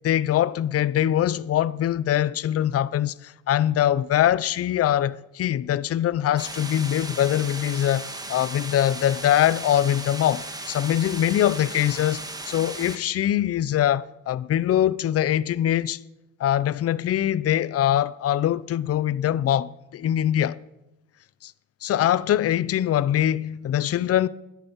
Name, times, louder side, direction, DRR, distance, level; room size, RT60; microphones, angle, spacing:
voice 1, 0.0-16.0 16.4-20.6 21.4-21.5 21.8-24.3, left 11 dB, 50° left, 0.5 m, -23 dB
sound 1, 6.4-13.0, right 2 dB, 10° right, 1.6 m, -36 dB
12.5 x 9.8 x 7.2 m
cardioid pair, 105°, 30 cm